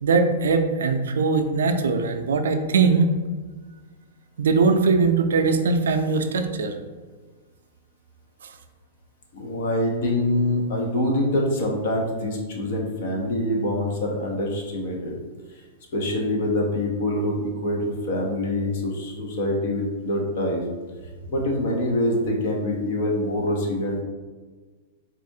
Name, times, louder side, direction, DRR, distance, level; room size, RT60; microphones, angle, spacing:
voice 1, 0.0-3.1 4.4-6.7 8.4-8.5, right 4 dB, 85° right, 7 dB, 0.4 m, -21 dB
voice 2, 9.3-15.1 15.9-20.6 21.3-24.0, left 1 dB, 60° left, 0 dB, 0.8 m, -25 dB
4.1 x 2.4 x 2.7 m, 1.4 s
hypercardioid pair, 135°, 0 cm